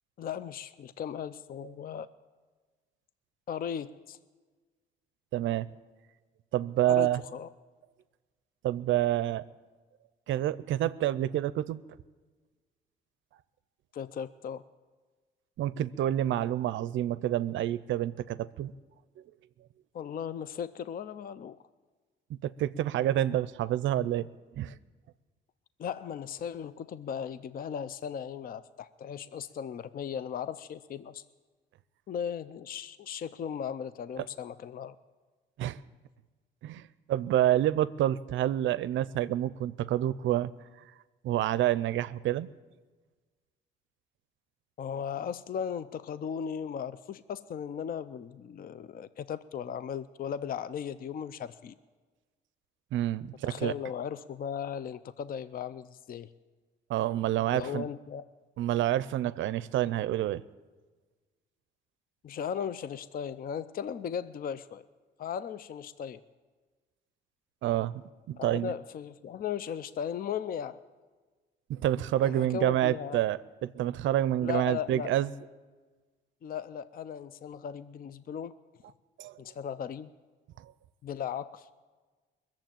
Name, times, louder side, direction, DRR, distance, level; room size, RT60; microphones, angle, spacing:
voice 1, 0.2-2.1 3.5-4.2 6.8-7.5 13.9-14.6 19.9-21.6 25.8-31.2 32.1-35.0 44.8-51.7 53.4-56.3 57.4-58.2 62.2-64.9 65.2-66.2 68.4-70.8 72.2-73.2 74.4-75.1 76.4-78.6 79.4-80.1 81.0-81.7, left 8 dB, 45° left, 15 dB, 0.5 m, -37 dB
voice 2, 5.3-5.7 6.5-7.2 8.6-9.4 10.3-11.8 15.6-18.7 22.4-24.3 24.6-24.7 35.6-35.8 36.6-40.5 41.2-42.5 52.9-53.7 56.9-57.8 58.6-60.4 67.6-68.7 71.7-75.3 79.2-79.4 80.6-80.7, right 12 dB, 75° right, 16 dB, 0.5 m, -28 dB
21.0 x 7.4 x 9.0 m, 1.4 s
cardioid pair, 90°, 20 cm